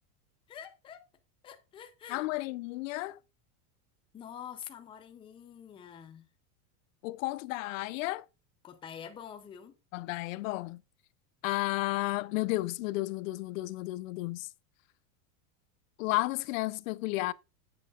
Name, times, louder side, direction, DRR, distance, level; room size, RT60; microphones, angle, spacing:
voice 1, 0.5-1.0 1.4-2.3 4.1-6.3 8.6-9.8, left 8 dB, 10° left, 0.5 m, -46 dB
voice 2, 2.1-3.2 7.0-8.2 9.9-10.8 11.4-14.5 16.0-17.3, left 20 dB, 65° left, 0.6 m, -32 dB
9.6 x 7.9 x 2.4 m
supercardioid pair, 160°, 43 cm